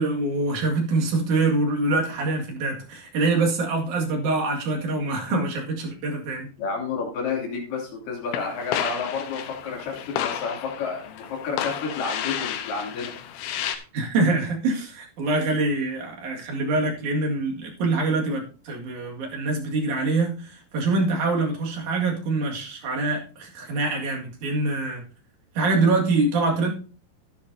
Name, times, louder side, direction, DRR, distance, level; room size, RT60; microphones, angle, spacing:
voice 1, 0.0-6.5 13.9-25.0 25.5-26.7, right 3 dB, 50° right, 0 dB, 3.0 m, -25 dB
voice 2, 6.6-13.1, left 5 dB, 50° left, -1 dB, 4.2 m, -30 dB
sound 1, 8.3-13.8, left 10 dB, 85° left, 3.2 m, -32 dB
12.5 x 10.5 x 2.7 m, 0.38 s
omnidirectional pair, 5.3 m